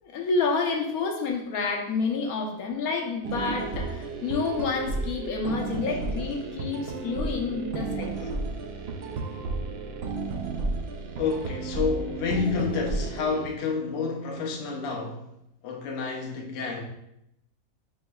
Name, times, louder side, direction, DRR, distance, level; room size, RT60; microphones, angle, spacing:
voice 1, 0.0-8.3, left 4 dB, 85° left, 1.2 m, -29 dB
sound 1, 3.2-13.5, right 3 dB, 65° right, 0.6 m, -32 dB
voice 2, 11.2-15.3 15.6-16.8, left 5 dB, 55° left, 0.9 m, -29 dB
7.4 x 3.0 x 2.3 m
omnidirectional pair, 1.5 m